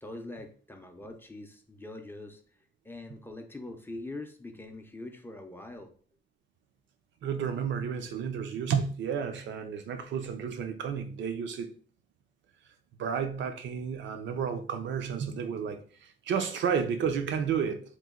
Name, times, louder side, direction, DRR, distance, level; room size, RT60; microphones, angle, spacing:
voice 1, 0.0-5.9, left 2 dB, 10° left, 0.4 m, -43 dB
voice 2, 7.2-11.7 13.0-17.8, right 7 dB, 80° right, 0.5 m, -31 dB
3.0 x 2.1 x 3.6 m
cardioid pair, 120°, 19 cm